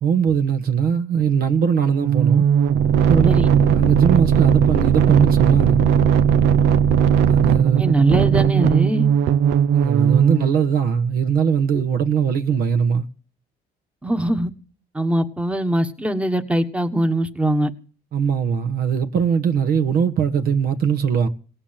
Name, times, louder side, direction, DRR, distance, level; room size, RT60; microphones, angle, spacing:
voice 1, 0.0-2.4 3.1-5.8 7.3-7.8 9.7-13.1 18.1-21.3, right 7 dB, 60° right, 1.5 m, -20 dB
sound 1, 1.9-10.5, right 8 dB, 90° right, 0.8 m, -17 dB
voice 2, 7.8-9.1 14.0-14.5 14.9-17.7, right 1 dB, 5° right, 1.4 m, -22 dB
18.0 x 8.5 x 7.4 m
cardioid pair, 110°, 17 cm